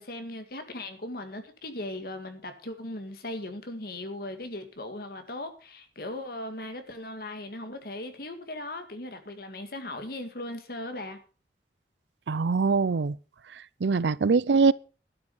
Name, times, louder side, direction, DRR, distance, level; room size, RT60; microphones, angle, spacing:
voice 1, 0.0-11.2, left 1 dB, 60° left, 2.0 m, -38 dB
voice 2, 12.3-13.2 13.5-14.7, right 4 dB, 85° right, 0.5 m, -23 dB
12.0 x 9.0 x 5.5 m
head